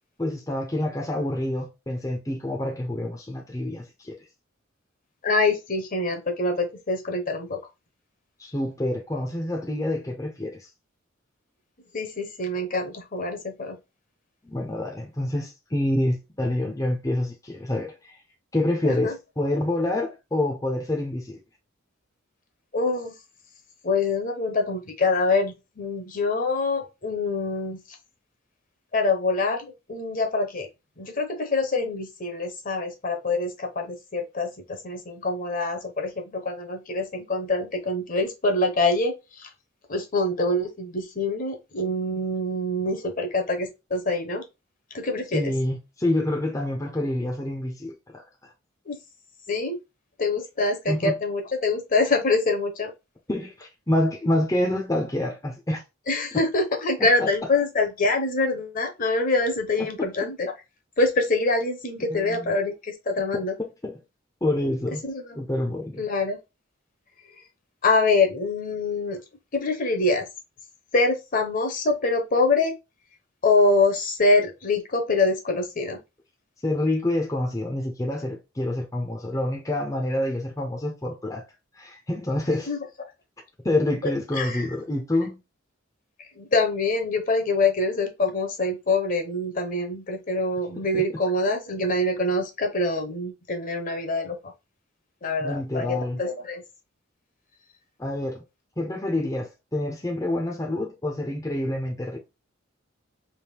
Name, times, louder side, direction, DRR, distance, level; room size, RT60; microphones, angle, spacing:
voice 1, 0.2-4.2 8.4-10.7 14.5-17.9 18.5-21.4 45.3-48.2 50.9-51.1 53.3-55.8 57.0-57.3 59.8-59.9 62.1-62.5 63.3-64.0 64.4-65.0 65.3-66.0 76.6-81.4 81.8-82.7 83.6-85.4 90.9-91.0 95.4-96.2 98.0-98.4 98.8-102.2, left 1 dB, 15° left, 0.7 m, -27 dB
voice 2, 5.2-7.6 11.9-13.8 18.8-19.2 22.7-23.1 23.8-27.8 28.9-30.7 31.0-39.5 39.9-44.4 44.9-45.5 48.9-49.0 49.5-49.8 50.2-52.9 56.1-60.5 61.0-63.6 65.0-65.3 66.0-66.4 67.8-69.2 69.5-70.2 70.9-72.7 73.4-76.0 82.7-83.1 84.0-84.7 86.4-94.4 95.2-96.6, left 3 dB, 40° left, 0.9 m, -25 dB
3.5 x 2.7 x 4.3 m
head